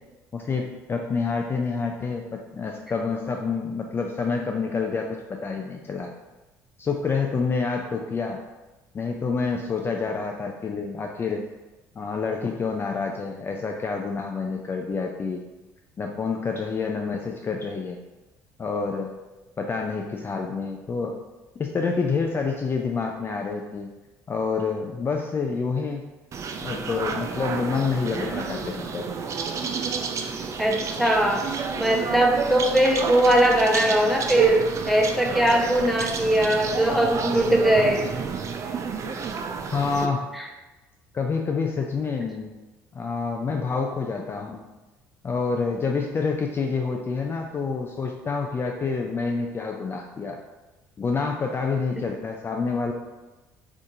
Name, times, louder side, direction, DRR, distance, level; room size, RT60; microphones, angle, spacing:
voice 1, 0.3-6.1 6.8-8.4 8.9-11.4 12.0-15.4 16.0-18.0 18.6-19.1 19.6-21.2 21.6-23.9 24.3-26.1 26.6-29.1 31.0-31.1 39.7-40.3 41.1-42.5 42.9-44.6 45.2-50.4 51.0-52.9, left 4 dB, 30° left, 2 dB, 0.3 m, -28 dB
sound 1, 26.3-40.1, right 6 dB, 45° right, 0.4 m, -29 dB
voice 2, 30.6-31.5 31.8-38.1 40.3-40.5, right 1 dB, ahead, -1 dB, 0.7 m, -21 dB
2.6 x 2.5 x 3.7 m, 1.1 s
supercardioid pair, 70°, 7 cm